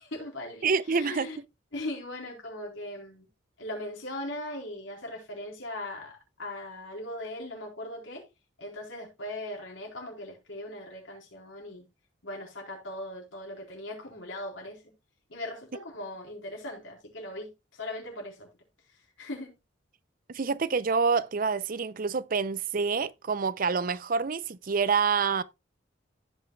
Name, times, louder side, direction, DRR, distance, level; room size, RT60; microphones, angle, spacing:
voice 1, 0.0-1.4 1.7-3.3 3.6-8.3 8.6-11.9 12.2-14.9 15.3-18.5 18.9-19.5, left 1 dB, 75° left, 4.1 m, -39 dB
voice 2, 0.6-1.3 20.3-25.4, right 5 dB, 45° right, 0.6 m, -27 dB
15.5 x 5.7 x 2.3 m
head